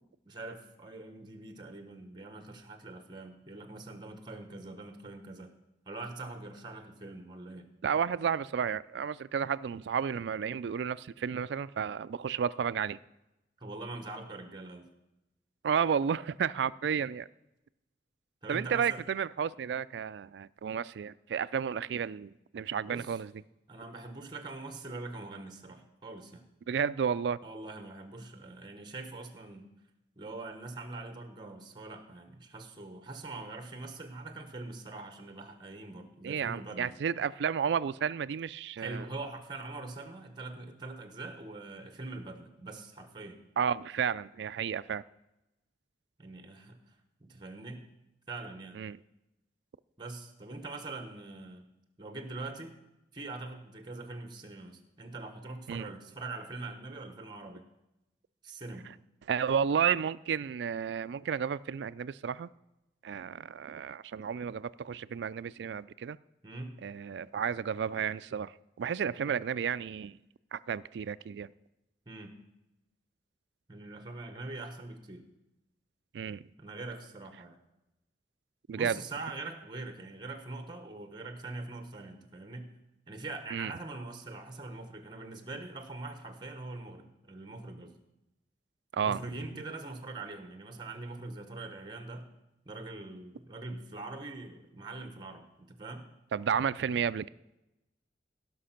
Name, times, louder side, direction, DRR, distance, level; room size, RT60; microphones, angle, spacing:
voice 1, 0.2-5.5 5.9-7.7 13.6-14.9 18.4-19.0 22.8-23.2 23.7-26.4 27.4-29.7 30.2-36.9 38.8-43.4 46.2-47.9 48.3-48.8 50.0-51.7 52.0-52.8 53.1-57.6 58.4-58.9 66.4-66.8 72.1-72.4 73.7-75.2 76.6-77.6 78.7-82.7 83.1-87.9 89.0-92.3 92.6-96.1, right 2 dB, 25° right, 7 dB, 1.2 m, -43 dB
voice 2, 7.8-13.0 15.6-17.3 18.5-23.3 26.7-27.4 36.2-39.1 43.6-45.0 48.8-49.0 55.7-55.9 59.3-62.5 63.0-66.2 66.8-68.5 68.8-70.2 70.5-71.5 76.1-76.4 78.7-79.0 83.5-83.7 88.9-89.2 96.3-97.3, right 7 dB, 75° right, 17 dB, 0.3 m, -32 dB
16.5 x 6.0 x 5.8 m, 0.94 s
head